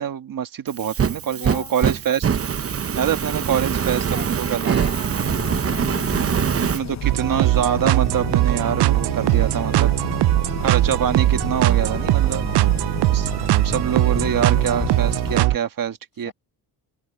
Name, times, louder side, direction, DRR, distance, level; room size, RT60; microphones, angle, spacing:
voice 1, 0.0-2.2 3.0-4.9 6.6-9.9 10.6-12.4 13.1-13.3 13.6-16.3, right 9 dB, 55° right, 1.5 m, -25 dB
Fire, 0.7-6.8, right 7 dB, 35° right, 0.8 m, -23 dB
voice 2, 1.3-2.0 4.1-6.4 9.4-10.8 12.4-13.2 16.2-16.3, left 8 dB, 55° left, 7.3 m, -41 dB
sound 1, 5.2-15.5, left 9 dB, 40° left, 0.9 m, -33 dB
sound 2, 7.0-15.6, right 16 dB, 70° right, 0.5 m, -20 dB
wide cardioid pair, 150°, 41 cm